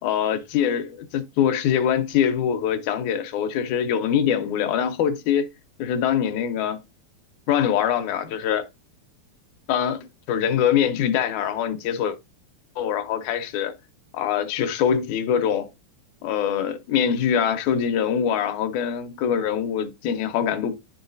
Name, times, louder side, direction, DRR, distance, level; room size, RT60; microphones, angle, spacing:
voice 1, 0.0-5.5 5.8-6.8 7.5-8.7 9.7-12.2 12.8-13.7 14.1-15.7 16.2-20.8, left 8 dB, 90° left, 2.1 m, -23 dB
11.0 x 3.8 x 2.6 m
omnidirectional pair, 3.4 m